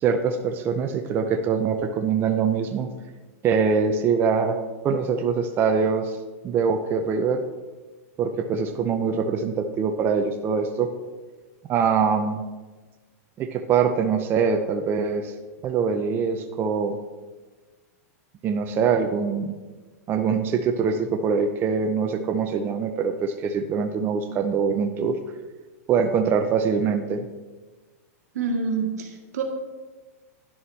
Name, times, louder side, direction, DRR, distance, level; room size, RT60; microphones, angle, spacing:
voice 1, 0.0-2.9 3.4-4.6 4.8-6.2 6.4-7.4 8.2-10.9 11.7-12.4 13.4-15.3 15.6-17.0 18.4-19.6 20.1-25.2 25.9-27.3, right 6 dB, 25° right, 6 dB, 0.5 m, -23 dB
voice 2, 28.3-29.4, right 4 dB, 85° right, 2 dB, 1.7 m, -27 dB
10.5 x 7.0 x 3.3 m, 1.3 s
supercardioid pair, 140°, 8 cm